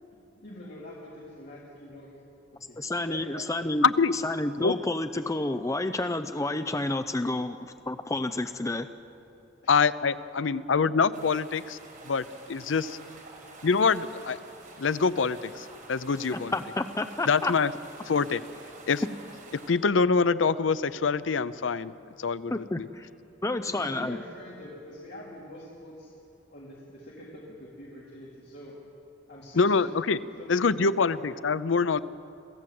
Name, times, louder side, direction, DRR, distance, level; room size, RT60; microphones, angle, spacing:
voice 1, 0.4-2.1 2.5-2.8 3.1-3.5 9.6-9.7 23.6-26.1 26.5-28.7 29.3-29.9 30.4-31.2, left 1 dB, 60° left, -6 dB, 3.9 m, -44 dB
voice 2, 2.8-3.9 4.1-8.9 16.3-17.5 22.5-23.1 23.4-24.2, left 2 dB, 15° left, 9 dB, 0.5 m, -30 dB
voice 3, 3.8-4.1 4.6-4.7 9.7-11.8 12.1-13.0 13.6-14.4 14.8-16.5 17.3-17.7 18.1-18.4 18.9-19.0 19.5-21.9 22.2-22.9 29.6-30.2 30.5-32.0, left 5 dB, 85° left, 15 dB, 0.6 m, -25 dB
sound 1, 11.1-19.7, right 3 dB, 45° right, 5.5 m, -48 dB
27.5 x 16.0 x 7.8 m, 2.7 s
head